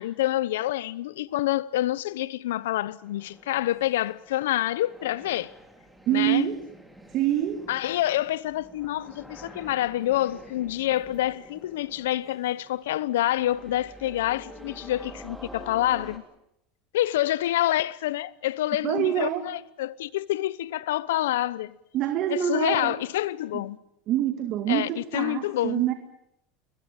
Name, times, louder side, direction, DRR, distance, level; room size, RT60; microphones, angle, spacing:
voice 1, 0.0-5.5 6.1-6.5 7.7-16.3 16.9-21.8 22.3-23.8 24.7-25.8, left 14 dB, 90° left, 0.9 m, -27 dB
sound 1, 3.0-16.2, equal, ahead, 3.4 m, -48 dB
voice 2, 6.1-6.6 7.1-7.6 18.8-19.5 21.9-23.0 23.5-23.6 24.1-25.9, right 11 dB, 50° right, 2.1 m, -26 dB
22.0 x 21.0 x 9.2 m
supercardioid pair, 125°, 0 cm